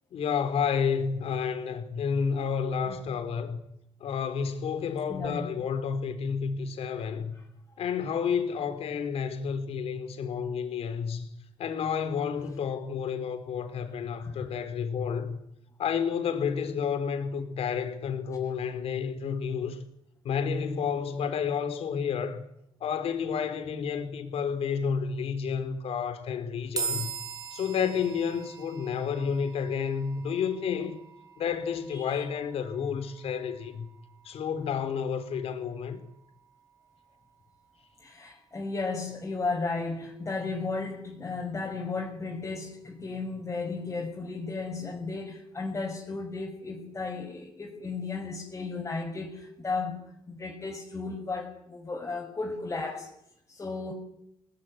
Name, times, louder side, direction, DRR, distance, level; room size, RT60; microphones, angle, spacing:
voice 1, 0.1-3.6 4.0-7.3 7.8-11.3 11.6-15.4 15.8-19.8 20.2-22.4 22.8-27.1 27.5-31.0 31.4-33.8 34.2-36.0, left 6 dB, 75° left, 4.5 m, -30 dB
voice 2, 5.1-5.5 14.2-14.3 31.9-32.2 38.0-50.0 50.3-53.1 53.5-53.9, left 3 dB, 25° left, 6.3 m, -34 dB
sound 1, 26.8-40.1, right 5 dB, 35° right, 4.3 m, -43 dB
27.5 x 20.0 x 9.9 m
cardioid pair, 105°, 10 cm